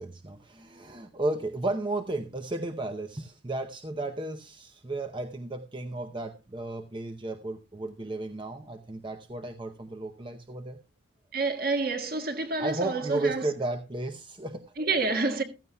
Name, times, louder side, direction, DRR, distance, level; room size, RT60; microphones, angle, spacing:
voice 1, 0.0-10.8 12.6-14.7, right 2 dB, 25° right, 0.7 m, -34 dB
voice 2, 11.3-13.4 14.8-15.4, right 3 dB, 50° right, 1.6 m, -28 dB
15.0 x 14.0 x 2.2 m
head